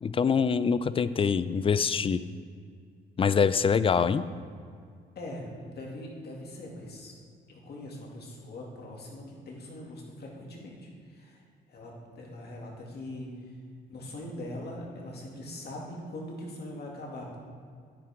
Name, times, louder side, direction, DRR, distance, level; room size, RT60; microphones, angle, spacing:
voice 1, 0.0-2.2 3.2-4.3, left 6 dB, 30° left, 15 dB, 0.4 m, -24 dB
voice 2, 5.2-7.1 7.5-11.4 11.7-13.3 13.9-17.4, left 1 dB, 55° left, -2 dB, 2.4 m, -41 dB
9.7 x 9.3 x 3.6 m, 2.2 s
cardioid pair, 90°, 20 cm